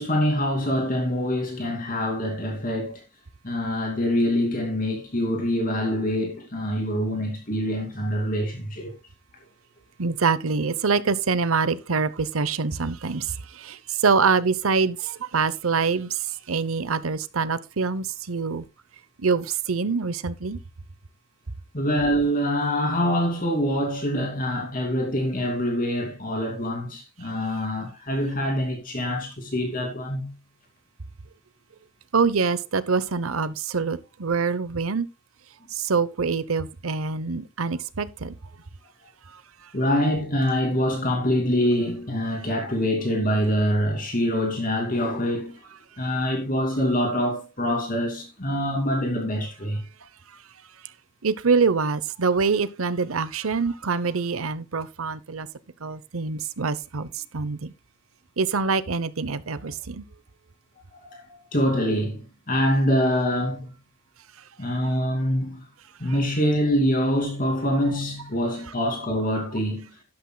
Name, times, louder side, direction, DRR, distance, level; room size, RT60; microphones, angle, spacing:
voice 1, 0.0-3.0 3.4-8.9 21.7-30.3 39.7-45.6 46.0-49.8 60.9-63.7 64.6-65.7 66.0-69.9, equal, 40° left, 2.6 m, -25 dB
voice 2, 10.0-16.2 16.5-18.6 19.2-20.6 32.1-35.1 35.7-38.3 51.2-55.5 55.8-57.7 58.4-60.0 66.1-66.2, right 5 dB, 90° right, 0.9 m, -25 dB
12.5 x 11.5 x 2.3 m
head